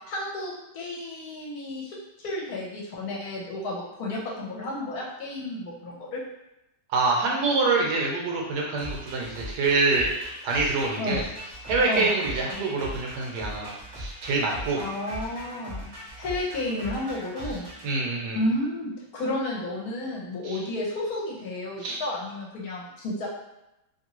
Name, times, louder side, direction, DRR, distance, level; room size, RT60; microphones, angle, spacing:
voice 1, 0.1-6.2 11.0-11.2 11.9-12.1 14.8-15.9 16.2-17.7 18.3-23.3, left 1 dB, 65° left, -3 dB, 1.1 m, -32 dB
voice 2, 6.9-10.1 10.4-11.3 11.7-14.8 17.8-18.4 20.4-20.6 21.8-22.0, right 3 dB, 75° right, -1 dB, 1.2 m, -26 dB
sound 1, 8.8-17.9, equal, 25° right, 0.6 m, -39 dB
2.9 x 2.6 x 2.9 m, 0.89 s
omnidirectional pair, 1.9 m